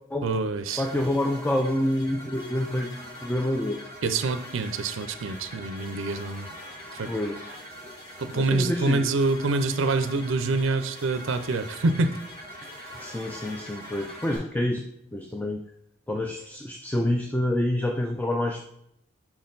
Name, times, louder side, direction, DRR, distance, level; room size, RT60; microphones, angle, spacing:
voice 1, 0.2-0.8 4.0-6.5 6.9-7.1 8.2-12.1 12.8-13.1, right 3 dB, 65° right, 10 dB, 0.5 m, -26 dB
sound 1, 0.7-14.4, equal, 30° left, 2.2 m, -43 dB
voice 2, 0.8-3.8 7.1-7.5 7.8-7.9 8.3-9.2 12.9-14.8 15.1-15.6 16.1-18.6, left 1 dB, 10° left, 2 dB, 0.4 m, -27 dB
5.9 x 4.3 x 3.8 m, 0.77 s
head